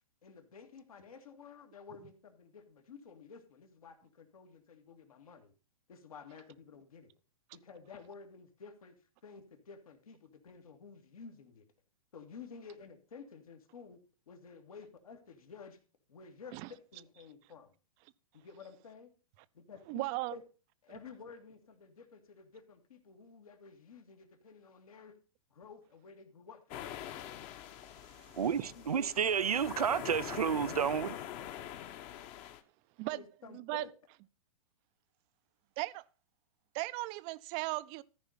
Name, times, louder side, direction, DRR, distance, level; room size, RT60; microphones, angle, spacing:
voice 1, 0.2-5.5 5.9-7.1 7.5-9.0 9.2-11.7 12.1-15.8 16.1-17.7 18.3-19.1 19.5-20.0 20.3-20.4 20.8-25.2 25.5-26.9 28.4-29.5 33.1-33.9, left 5 dB, 75° left, 2.1 m, -52 dB
voice 2, 19.9-20.4 28.2-28.4 33.0-33.2 33.5-33.8 35.8-36.0 36.7-38.0, right 21 dB, 35° right, 0.5 m, -37 dB
sound 1, 26.7-32.6, left 11 dB, 35° left, 1.0 m, -44 dB
voice 3, 28.4-31.2, right 7 dB, 90° right, 0.5 m, -31 dB
13.5 x 5.2 x 5.6 m
hypercardioid pair, 115°, 19 cm